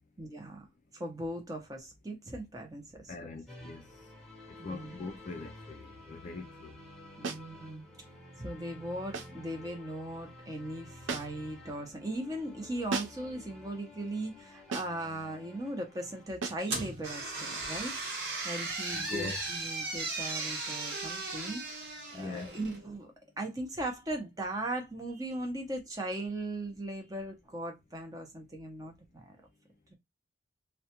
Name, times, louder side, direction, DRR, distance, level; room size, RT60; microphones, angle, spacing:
voice 1, 0.2-0.7 0.9-3.1 4.6-4.9 7.2-7.8 8.4-17.9 18.4-21.6 21.9-29.3, right 1 dB, 20° right, 0.6 m, -38 dB
voice 2, 3.1-3.9 4.6-6.7 18.9-19.4 22.1-22.6, left 3 dB, 40° left, 0.3 m, -41 dB
sound 1, 3.5-16.3, left 1 dB, 5° left, 0.9 m, -52 dB
sound 2, 7.2-7.5 9.1-9.4 11.1-11.5 12.9-13.3 14.7-15.1 16.4-16.7, right 4 dB, 85° right, 0.5 m, -37 dB
sound 3, 16.7-22.8, right 3 dB, 65° right, 1.0 m, -37 dB
2.3 x 2.1 x 2.8 m
head